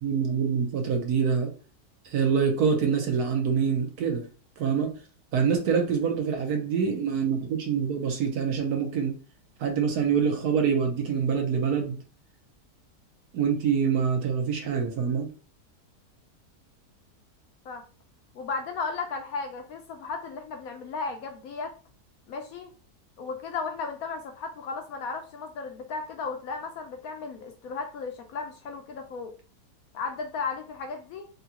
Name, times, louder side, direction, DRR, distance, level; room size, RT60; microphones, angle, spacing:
voice 1, 0.0-1.5 2.0-4.3 4.6-5.0 5.3-9.1 9.6-12.0 13.3-15.3, right 6 dB, 70° right, 3 dB, 1.1 m, -25 dB
voice 2, 18.3-21.7 22.3-22.7 23.2-29.3 29.9-31.3, left 4 dB, 70° left, 4 dB, 0.9 m, -35 dB
3.7 x 2.3 x 2.7 m, 0.37 s
omnidirectional pair, 1.8 m